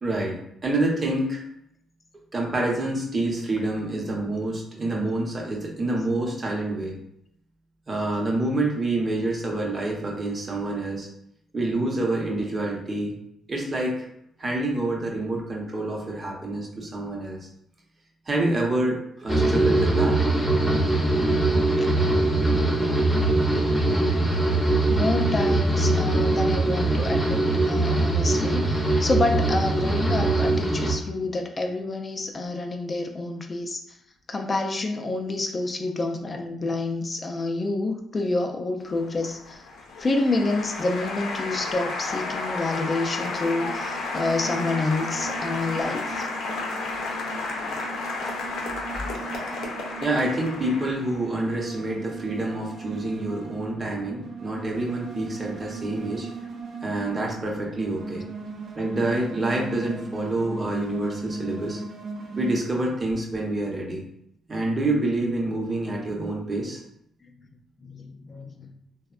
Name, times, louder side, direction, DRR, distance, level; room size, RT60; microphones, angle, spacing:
voice 1, 0.0-1.4 2.3-7.0 7.9-11.1 11.5-13.2 13.5-14.1 14.4-17.5 18.3-20.2 24.0-24.1 50.0-56.3 56.8-58.2 58.8-61.8 62.4-64.0 64.5-66.8, right 2 dB, 30° right, -1 dB, 0.8 m, -27 dB
sound 1, 19.3-30.9, right 2 dB, 5° left, 0.7 m, -22 dB
voice 2, 24.9-27.4 27.7-34.0 34.3-39.6 40.0-46.3 67.8-68.7, left 2 dB, 35° left, 4 dB, 0.4 m, -28 dB
Applause, 38.9-51.4, left 3 dB, 80° left, 0.5 m, -32 dB
sound 2, 43.1-62.6, right 4 dB, 65° right, 0.5 m, -38 dB
3.3 x 2.1 x 2.4 m, 0.75 s
cardioid pair, 90°, 0 cm